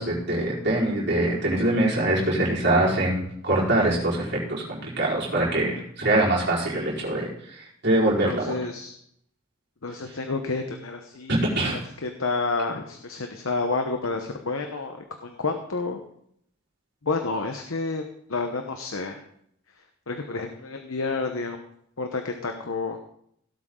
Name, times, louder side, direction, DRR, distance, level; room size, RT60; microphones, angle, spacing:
voice 1, 0.0-8.5 11.3-11.8, right 1 dB, 50° right, -6 dB, 4.6 m, -24 dB
voice 2, 8.2-8.9 9.8-11.5 12.0-16.0 17.0-18.0 18.3-19.2 20.1-21.6 22.0-23.0, left 3 dB, 70° left, 5 dB, 1.0 m, -29 dB
17.0 x 8.2 x 3.8 m, 0.70 s
head